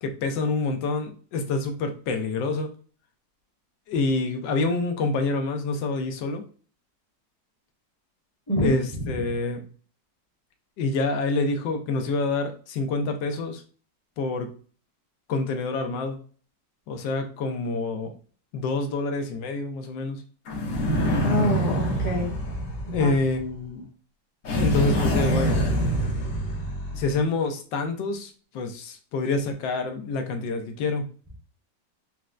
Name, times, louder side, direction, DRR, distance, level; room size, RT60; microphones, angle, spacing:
voice 1, 0.0-2.7 3.9-6.4 8.6-9.7 10.8-13.6 14.2-14.5 15.3-16.2 16.9-18.1 18.5-20.2 22.9-23.9 24.6-25.6 26.9-31.1, left 3 dB, 85° left, 6 dB, 1.3 m, -27 dB
voice 2, 8.5-8.8 21.2-22.3 22.9-23.1, equal, 15° left, -3 dB, 0.8 m, -26 dB
sound 1, 20.5-23.5 24.4-27.2, equal, 55° left, 1.2 m, -25 dB
4.2 x 2.1 x 2.4 m, 0.40 s
omnidirectional pair, 1.9 m